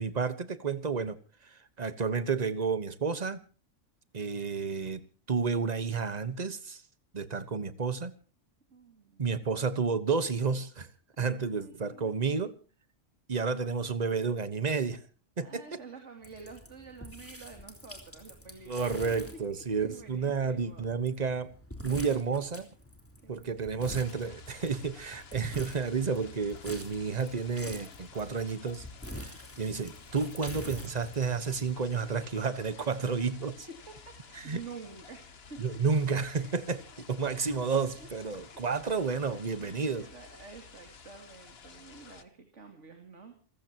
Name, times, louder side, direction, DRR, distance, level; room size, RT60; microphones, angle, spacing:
voice 1, 0.0-3.4 4.1-6.8 7.1-8.1 9.2-10.9 11.2-12.5 13.3-15.0 15.4-15.8 18.7-21.5 21.8-22.7 23.3-28.9 29.2-33.7 34.3-34.6 35.6-36.8 37.1-40.1, right 5 dB, 35° right, 1.2 m, -31 dB
voice 2, 8.7-9.2 11.2-12.5 15.4-19.0 19.7-20.9 23.2-23.8 32.8-33.4 33.7-36.0 36.9-37.0 38.0-38.1 39.6-43.3, right 4 dB, 75° right, 2.8 m, -49 dB
sound 1, 16.2-31.7, equal, 10° left, 3.3 m, -47 dB
sound 2, 23.8-42.2, left 5 dB, 55° left, 1.5 m, -52 dB
28.0 x 16.0 x 2.9 m
omnidirectional pair, 1.2 m